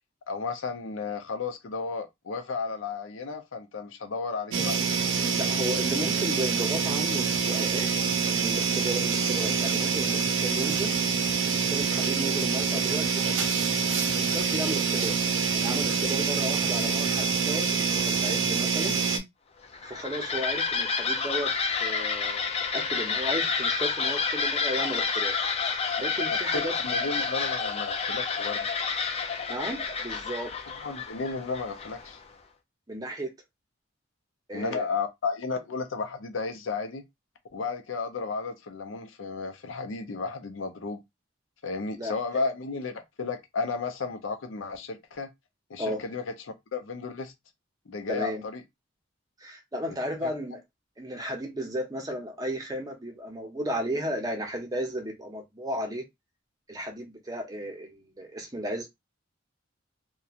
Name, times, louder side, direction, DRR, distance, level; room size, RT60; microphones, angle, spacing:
voice 1, 0.3-5.0 26.5-28.7 30.8-32.2 34.5-37.0 37.5-41.0 41.6-45.3 45.7-46.4 46.7-47.3 47.9-48.6 49.9-50.0 50.2-50.3, left 4 dB, 80° left, 0.6 m, -33 dB
sound 1, 4.5-19.2, right 5 dB, 90° right, 0.6 m, -26 dB
voice 2, 5.3-7.9 8.3-10.9 11.5-13.1 14.1-15.2 15.5-18.9 19.8-21.5 21.8-25.3 26.0-26.7 29.5-30.5 32.9-33.3 34.5-34.9 42.0-42.4 45.8-46.0 48.1-48.4 49.4-50.6 51.0-56.0 56.7-58.9, equal, 20° right, 0.6 m, -34 dB
sound 2, 19.6-32.2, left 5 dB, 30° left, 0.4 m, -29 dB
2.8 x 2.2 x 2.4 m
head